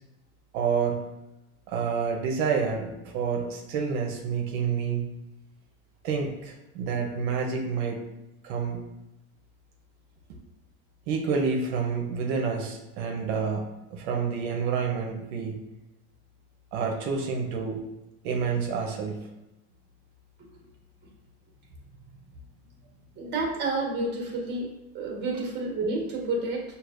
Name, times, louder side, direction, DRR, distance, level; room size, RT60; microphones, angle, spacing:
voice 1, 0.5-1.0 1.7-5.1 6.0-8.0 8.4-8.8 11.1-13.6 13.9-15.5 16.7-17.8 18.2-19.2, right 5 dB, 85° right, 1 dB, 0.7 m, -28 dB
voice 2, 23.2-24.7 24.9-26.6, right 2 dB, 35° right, -2 dB, 1.3 m, -29 dB
6.2 x 2.7 x 2.5 m, 0.96 s
cardioid pair, 135°, 32 cm